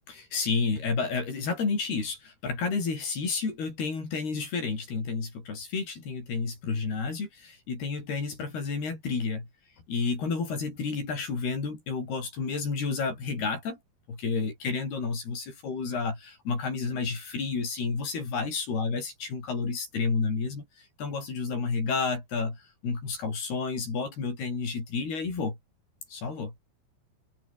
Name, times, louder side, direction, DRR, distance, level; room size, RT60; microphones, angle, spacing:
voice 1, 0.1-9.5 9.9-13.8 14.1-20.7 21.0-25.6 26.1-26.5, left 4 dB, 75° left, 9.2 m, -31 dB
omnidirectional pair, 4.6 m